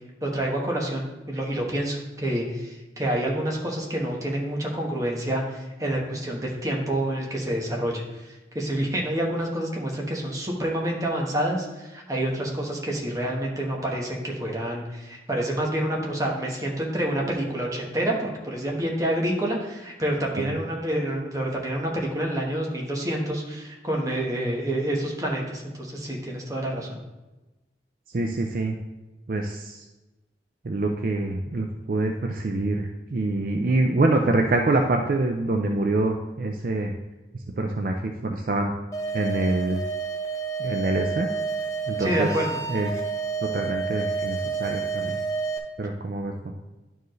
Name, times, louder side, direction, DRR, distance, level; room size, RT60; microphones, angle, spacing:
voice 1, 0.2-26.9 42.0-42.6, right 1 dB, 20° right, -1 dB, 1.2 m, -28 dB
voice 2, 28.1-28.7 29.3-29.8 30.6-36.9 37.6-38.7 39.1-39.8 40.6-41.3 41.9-42.3 42.7-42.9 43.4-45.2 45.8-46.3, right 2 dB, 50° right, 3 dB, 0.5 m, -25 dB
sound 1, 38.9-45.6, right 5 dB, 20° left, 0.7 m, -30 dB
11.0 x 4.6 x 3.1 m, 1.1 s
head